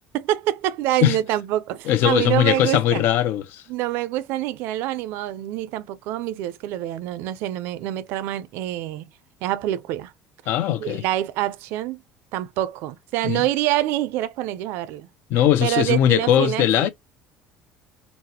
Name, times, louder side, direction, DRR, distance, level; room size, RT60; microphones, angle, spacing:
voice 1, 0.1-3.0 3.7-9.1 9.4-10.1 10.8-12.0 12.3-15.1 15.6-16.9, right 14 dB, 70° right, 0.4 m, -26 dB
voice 2, 1.9-3.6 10.5-11.0 13.2-13.4 15.3-16.9, left 11 dB, 65° left, 0.6 m, -20 dB
4.0 x 2.0 x 2.8 m
cardioid pair, 115°, 4 cm